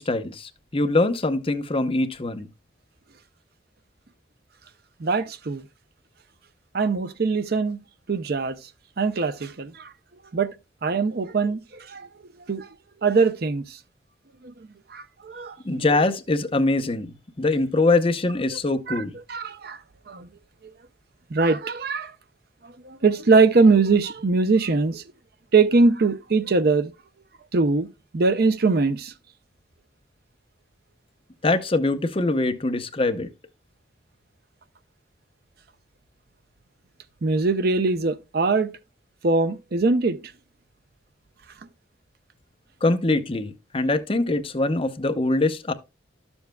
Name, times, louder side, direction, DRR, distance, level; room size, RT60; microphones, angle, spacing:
voice 1, 0.0-2.5 15.6-19.1 31.4-33.3 42.8-45.7, left 2 dB, 30° left, 0.7 m, -23 dB
voice 2, 5.0-5.6 6.7-7.8 8.1-8.6 9.0-9.9 10.3-10.5 10.8-11.6 11.9-12.1 12.5-12.7 13.0-13.6 14.4-14.5 14.9-15.8 18.9-19.0 19.3-19.8 20.1-20.3 21.3-22.1 22.9-25.0 25.5-26.9 27.5-27.9 28.1-29.1 37.2-38.7 39.2-40.2, right 4 dB, 55° right, 0.6 m, -21 dB
11.5 x 7.1 x 2.2 m
head